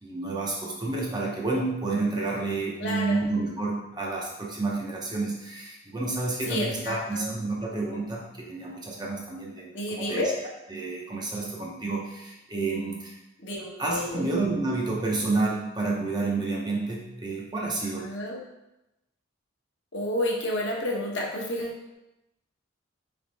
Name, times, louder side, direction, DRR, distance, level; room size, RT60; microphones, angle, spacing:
voice 1, 0.0-10.3 10.7-13.2 13.8-18.1, right 3 dB, 20° right, -2 dB, 0.6 m, -30 dB
voice 2, 2.8-3.2 6.5-7.3 9.7-10.3 13.4-14.2 18.0-18.4 19.9-21.9, left 1 dB, 55° left, -2 dB, 0.9 m, -30 dB
3.6 x 3.4 x 3.9 m, 0.93 s
head